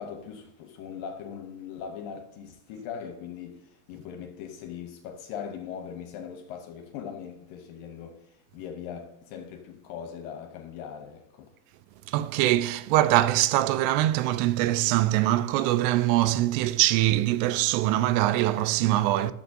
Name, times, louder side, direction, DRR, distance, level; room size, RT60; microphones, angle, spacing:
voice 1, 0.0-8.3 8.5-11.5 19.2-19.3, left 7 dB, 80° left, 2.2 m, -40 dB
voice 2, 12.1-19.3, right 15 dB, 85° right, 2.6 m, -23 dB
10.5 x 6.9 x 2.6 m
omnidirectional pair, 4.6 m